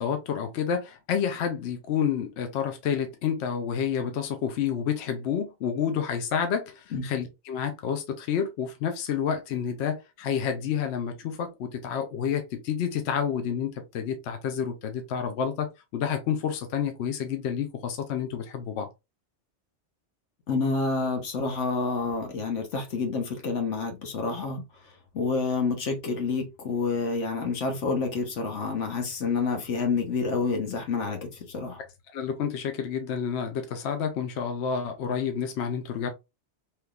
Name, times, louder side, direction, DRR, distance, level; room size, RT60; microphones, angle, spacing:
voice 1, 0.0-18.9 32.1-36.1, left 7 dB, 70° left, 0.9 m, -29 dB
voice 2, 20.5-24.6 25.1-31.8, left 4 dB, 85° left, 1.3 m, -28 dB
3.4 x 2.9 x 2.3 m
omnidirectional pair, 1.2 m